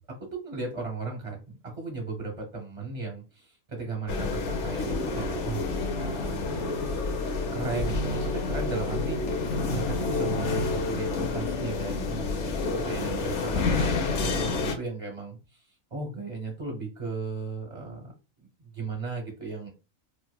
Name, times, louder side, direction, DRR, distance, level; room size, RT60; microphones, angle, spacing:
voice 1, 0.2-1.4 1.7-5.7 6.0-6.6 7.5-15.6 15.9-18.1 18.4-19.7, right 3 dB, 30° right, 1 dB, 0.7 m, -36 dB
sound 1, 4.1-14.7, left 3 dB, 65° left, 0.9 m, -29 dB
4.5 x 2.1 x 2.2 m, 0.31 s
omnidirectional pair, 1.4 m